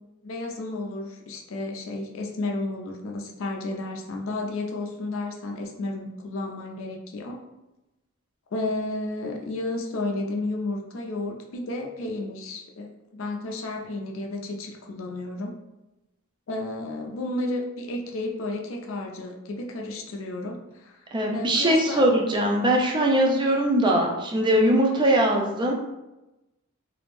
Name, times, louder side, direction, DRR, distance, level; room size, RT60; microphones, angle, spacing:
voice 1, 0.2-7.4 8.5-15.5 16.5-21.0 21.3-22.1, left 2 dB, 70° left, 1 dB, 0.4 m, -32 dB
voice 2, 21.1-25.7, right 1 dB, 25° right, 0 dB, 0.4 m, -21 dB
2.5 x 2.0 x 3.0 m, 0.98 s
head